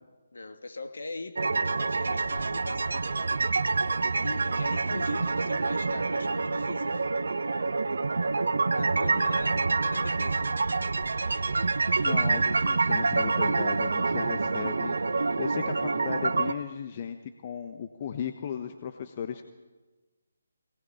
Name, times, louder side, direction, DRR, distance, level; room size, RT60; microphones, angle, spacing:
voice 1, 0.3-3.0 4.2-7.0 8.7-10.6, left 2 dB, 65° left, 5 dB, 2.6 m, -41 dB
sound 1, 1.4-16.5, right 3 dB, 65° right, 1.1 m, -27 dB
voice 2, 12.0-17.2 17.4-19.4, left 8 dB, 35° left, 7 dB, 1.2 m, -36 dB
22.5 x 19.5 x 7.2 m, 1.2 s
figure-of-eight pair, 145°, 0 cm